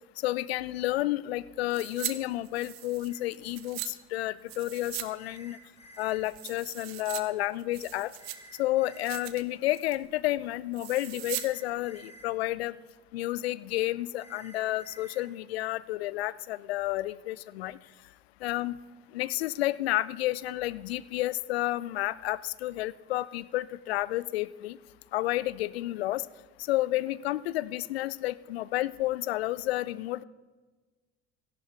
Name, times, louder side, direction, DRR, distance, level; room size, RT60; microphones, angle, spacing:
voice 1, 0.2-5.6 6.0-8.1 8.6-12.7 13.1-17.8 18.4-18.8 19.1-24.8 25.1-26.3 26.6-30.2, left 16 dB, 70° left, 19 dB, 0.5 m, -31 dB
sound 1, 1.7-2.1 2.4-3.9 4.5-5.1 5.4-5.5 5.9-7.2 7.6-8.6 8.9-9.4 9.7-10.0 10.7-11.5 11.8-11.9, right 15 dB, 65° right, 0.8 m, -39 dB
sound 2, 3.1-3.2 5.2-6.2 8.2-9.2 11.2-12.3 14.2-15.2, right 1 dB, 20° left, 3.4 m, -52 dB
17.0 x 13.5 x 3.5 m, 1.3 s
figure-of-eight pair, 60°, 33 cm